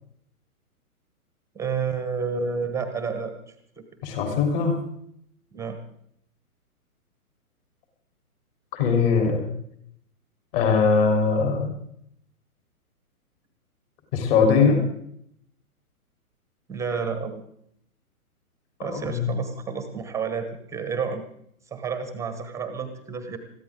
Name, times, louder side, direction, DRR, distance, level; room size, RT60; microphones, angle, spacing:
voice 1, 1.5-3.5 5.5-5.8 16.7-17.4 18.8-21.2 21.7-23.4, right 5 dB, 5° right, 9 dB, 1.0 m, -30 dB
voice 2, 4.0-4.8 8.7-9.4 10.5-11.7 14.1-14.8 18.9-19.4, left 5 dB, 40° left, 3 dB, 3.7 m, -21 dB
21.5 x 15.0 x 3.7 m, 0.69 s
hypercardioid pair, 130°, 45 cm